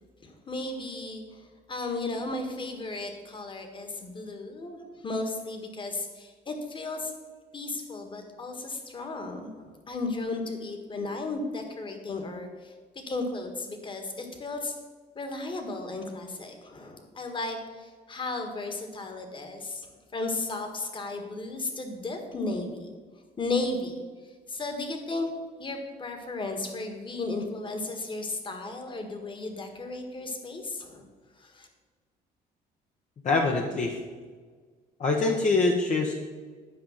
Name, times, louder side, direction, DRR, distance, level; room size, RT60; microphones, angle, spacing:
voice 1, 0.2-1.4 1.7-7.1 7.5-14.7 15.1-19.9 20.1-22.9 23.4-24.0 24.5-25.3 25.6-31.1 31.4-31.7, left 2 dB, 30° left, 5 dB, 1.7 m, -34 dB
voice 2, 33.2-34.0 35.0-36.1, left 3 dB, 45° left, 0 dB, 1.1 m, -24 dB
10.0 x 5.1 x 7.4 m, 1.5 s
cardioid pair, 110°, 17 cm